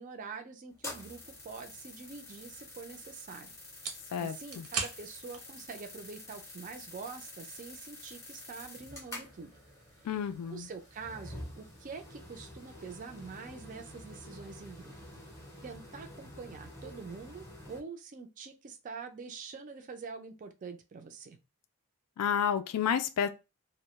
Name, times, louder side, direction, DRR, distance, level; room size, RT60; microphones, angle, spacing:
voice 1, 0.0-3.5 4.2-9.5 10.5-14.9 15.6-21.4, right 5 dB, 35° right, 0.3 m, -45 dB
sound 1, 0.7-17.8, left 1 dB, 10° left, 0.5 m, -48 dB
sound 2, 2.6-15.8, right 5 dB, 75° right, 0.7 m, -48 dB
voice 2, 4.1-4.7 10.0-10.7 22.2-23.3, left 8 dB, 90° left, 0.3 m, -30 dB
2.2 x 2.0 x 2.9 m
head